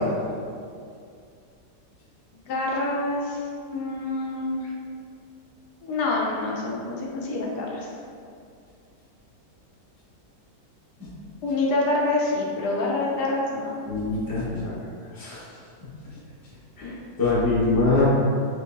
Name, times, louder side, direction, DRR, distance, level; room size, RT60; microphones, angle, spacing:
voice 1, 2.3-3.4 3.7-4.7 5.8-7.9 11.4-13.7 16.8-16.9, left 2 dB, 80° left, -3 dB, 1.2 m, -26 dB
voice 2, 13.9-14.7 15.2-15.4 16.8-16.9 17.2-18.1, left 3 dB, 15° left, -9 dB, 0.7 m, -23 dB
4.4 x 3.1 x 2.5 m, 2.4 s
omnidirectional pair, 1.8 m